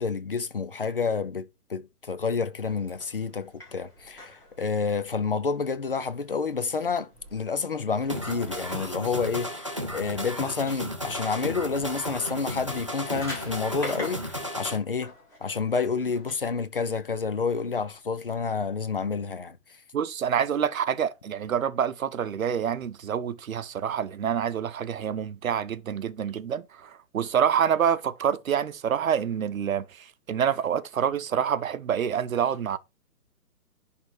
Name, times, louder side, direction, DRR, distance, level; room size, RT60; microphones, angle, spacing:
voice 1, 0.0-15.1 15.4-19.6, left 5 dB, 35° left, 0.6 m, -29 dB
sound 1, 2.6-16.3, left 1 dB, 5° left, 1.4 m, -46 dB
sound 2, 8.1-14.8, equal, 20° right, 0.5 m, -34 dB
voice 2, 19.9-32.8, right 8 dB, 55° right, 0.9 m, -27 dB
10.5 x 3.6 x 4.7 m
hypercardioid pair, 170°, 48 cm